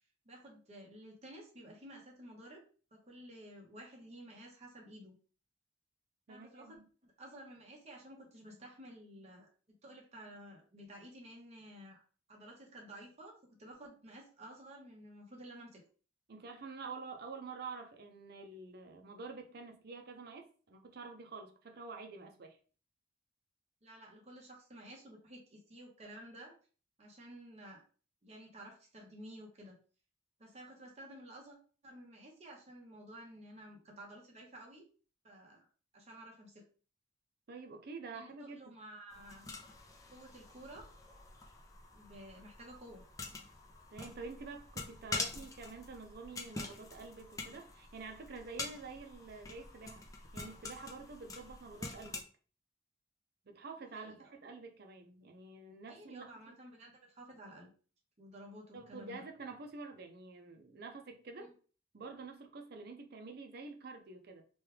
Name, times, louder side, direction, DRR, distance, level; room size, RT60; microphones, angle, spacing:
voice 1, 0.2-2.6 2.9-5.1 6.3-6.8 7.0-12.0 12.3-15.8 23.8-26.5 27.0-27.8 28.2-29.8 30.4-31.6 31.8-34.8 35.2-35.7 35.9-36.6 38.1-39.5 40.1-40.9 41.9-43.0 45.3-45.4 53.9-54.3 55.9-57.7 58.2-59.3 61.4-61.5, right 1 dB, 35° right, 0.9 m, -53 dB
voice 2, 6.3-6.7 16.3-22.6 37.5-38.6 43.9-50.0 50.3-52.3 53.5-56.6 58.7-61.5 61.9-64.4, right 4 dB, 55° right, 0.5 m, -48 dB
sound 1, 39.1-52.2, left 3 dB, 20° left, 0.4 m, -46 dB
3.1 x 2.2 x 3.3 m
head